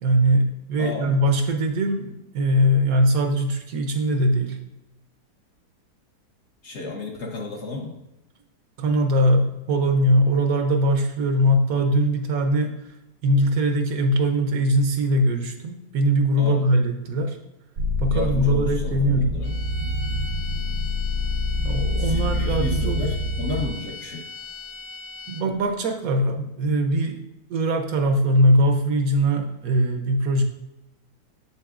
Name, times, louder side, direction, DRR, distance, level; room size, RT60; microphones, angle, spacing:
voice 1, 0.0-4.6 8.8-12.9 13.2-17.4 18.0-19.4 21.6-23.1 25.3-27.2 27.5-30.4, equal, 70° right, 5 dB, 1.0 m, -21 dB
voice 2, 0.8-1.2 6.6-8.0 16.4-16.7 18.1-19.6 22.0-24.3, left 3 dB, 55° left, 1 dB, 0.9 m, -33 dB
sound 1, 17.8-23.7, left 2 dB, 85° right, 1.3 m, -26 dB
sound 2, 19.4-25.7, left 4 dB, 75° left, 0.4 m, -39 dB
7.2 x 6.9 x 2.4 m, 0.93 s
omnidirectional pair, 1.7 m